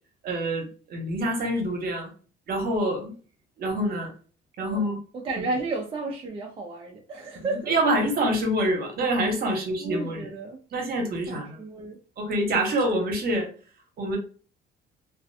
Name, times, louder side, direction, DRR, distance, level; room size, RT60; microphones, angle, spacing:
voice 1, 0.2-2.1 2.5-3.1 3.6-4.1 4.6-5.0 7.7-10.3 10.7-11.6 12.2-13.5 14.0-14.2, right 1 dB, 50° right, 3 dB, 0.9 m, -26 dB
voice 2, 4.6-7.7 9.5-10.6 11.3-12.0, right 3 dB, 30° right, 0 dB, 0.4 m, -33 dB
2.4 x 2.2 x 2.6 m, 0.39 s
cardioid pair, 125°, 20 cm